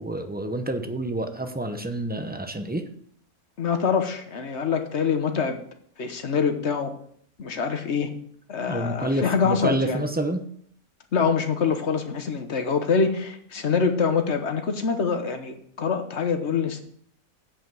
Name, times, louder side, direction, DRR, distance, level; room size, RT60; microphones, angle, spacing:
voice 1, 0.0-2.8 8.7-10.4, right 1 dB, 10° right, 6 dB, 0.6 m, -28 dB
voice 2, 3.6-5.6 6.0-6.9 7.4-8.1 8.5-10.0 11.1-16.8, left 5 dB, 55° left, 7 dB, 1.3 m, -25 dB
8.6 x 5.2 x 7.6 m, 0.63 s
omnidirectional pair, 1.5 m